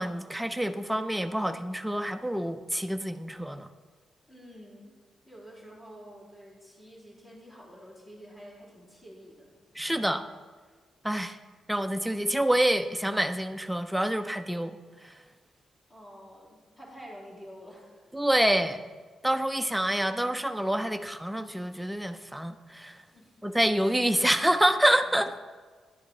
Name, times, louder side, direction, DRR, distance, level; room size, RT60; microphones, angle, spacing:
voice 1, 0.0-3.7 9.8-10.2 11.0-11.4 11.7-14.8 15.0-15.1 18.1-18.8 19.2-23.0 23.4-25.3, right 1 dB, 5° right, 8 dB, 0.4 m, -27 dB
voice 2, 4.3-5.0 5.2-9.5 15.9-18.1 23.1-23.4, equal, 30° left, -6 dB, 2.8 m, -49 dB
11.0 x 7.1 x 3.8 m, 1.5 s
cardioid pair, 130°, 0 cm